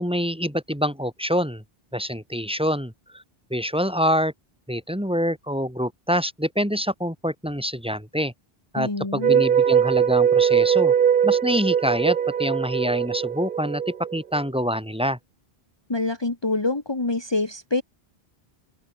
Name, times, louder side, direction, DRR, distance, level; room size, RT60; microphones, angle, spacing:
voice 1, 0.0-1.6 1.9-3.2 3.5-4.3 4.7-8.3 8.7-10.9 11.2-15.2, equal, 5° right, 3.3 m, -26 dB
voice 2, 8.8-9.4 15.9-17.8, left 2 dB, 25° left, 1.7 m, -26 dB
sound 1, 9.2-14.4, right 8 dB, 60° right, 0.9 m, -21 dB
open air
omnidirectional pair, 1.0 m